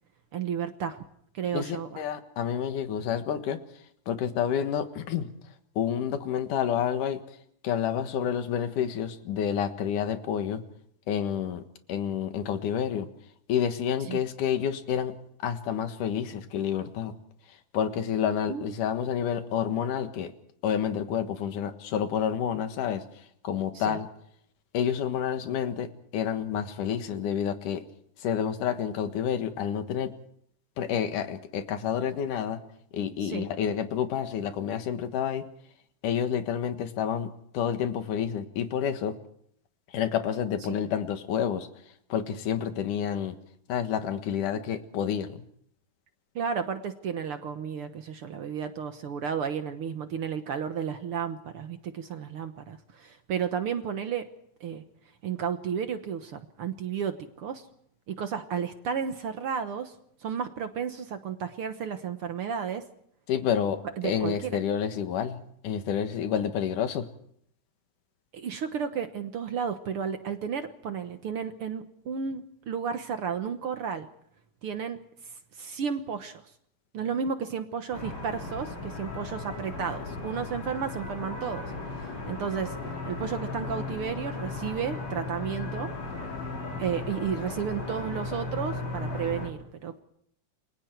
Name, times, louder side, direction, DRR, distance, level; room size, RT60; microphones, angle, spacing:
voice 1, 0.3-1.0 1.3-1.9 14.1-14.2 18.5-18.7 23.7-24.0 33.2-33.4 40.7-40.8 46.3-54.3 54.6-54.8 55.2-57.6 58.1-59.9 60.2-62.8 64.0-64.6 68.3-74.1 74.6-75.0 75.6-76.4 76.9-81.7 82.3-82.8 83.0-85.9 86.8-90.0, right 7 dB, 60° right, 8 dB, 1.7 m, -32 dB
voice 2, 1.5-3.6 4.1-5.3 5.8-7.2 7.6-10.6 11.1-11.6 11.9-13.1 13.5-15.1 15.4-17.1 17.7-20.3 20.6-23.0 23.4-24.1 24.7-27.8 28.2-30.1 30.8-32.6 32.9-35.5 36.0-39.1 39.9-41.7 42.1-43.4 43.7-45.4 63.3-65.4 65.6-67.1, left 8 dB, 90° left, 8 dB, 3.1 m, -29 dB
sound 1, 77.9-89.5, left 3 dB, 55° left, 5.5 m, -36 dB
29.0 x 23.0 x 4.6 m, 0.69 s
omnidirectional pair, 3.5 m